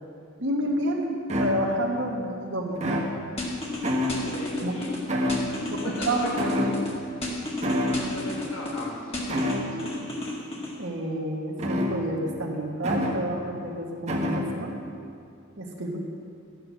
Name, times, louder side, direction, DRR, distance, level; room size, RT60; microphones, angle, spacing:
voice 1, 0.4-1.0 1.4-2.8 4.6-4.8 6.0-6.3 10.8-14.8 15.6-16.0, right 1 dB, 60° right, -1 dB, 1.5 m, -29 dB
sound 1, 0.6-0.7 1.3-2.0 2.8-3.5 3.8-4.5 5.1-5.8 6.4-7.2 7.6-8.1 9.3-9.9 11.6-12.3 12.8-13.3 14.1-14.7, left 1 dB, 35° right, 1.4 m, -28 dB
sound 2, 3.4-5.0 5.3-6.9 7.2-8.8 9.1-10.7, left 2 dB, 30° left, 1.9 m, -32 dB
voice 2, 4.3-5.1 5.8-6.7 7.8-9.4 9.8-10.2, left 1 dB, 75° left, -4 dB, 1.4 m, -37 dB
12.5 x 8.8 x 6.2 m, 2.4 s
head